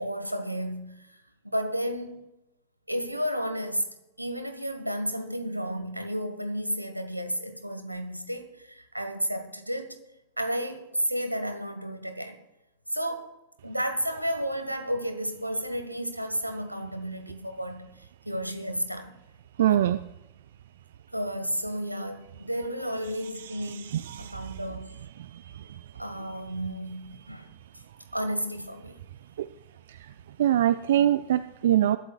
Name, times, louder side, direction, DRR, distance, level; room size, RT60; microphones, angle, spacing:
voice 1, 0.0-2.3 2.9-3.9 4.2-10.0 10.4-12.4 12.9-13.4 13.6-17.9 18.2-19.1 19.6-19.9 21.1-23.9 24.2-25.0 25.9-27.4 28.1-29.0, equal, 90° right, 1.4 m, -32 dB
voice 2, 19.6-20.0 23.7-24.3 30.4-32.0, right 11 dB, 60° right, 0.4 m, -23 dB
21.0 x 13.0 x 2.4 m
figure-of-eight pair, 90°, 0 cm